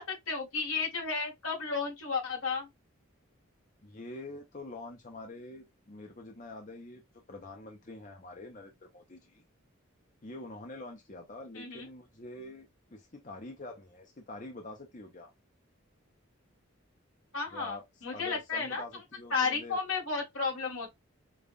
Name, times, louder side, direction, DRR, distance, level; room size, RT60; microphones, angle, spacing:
voice 1, 0.0-2.7 11.6-11.9 17.3-18.8 19.3-20.9, left 4 dB, 90° left, 1.9 m, -33 dB
voice 2, 3.8-7.0 7.3-9.4 10.2-15.3 17.5-17.8 18.1-19.8, left 2 dB, 35° left, 0.7 m, -46 dB
5.3 x 2.4 x 2.3 m
head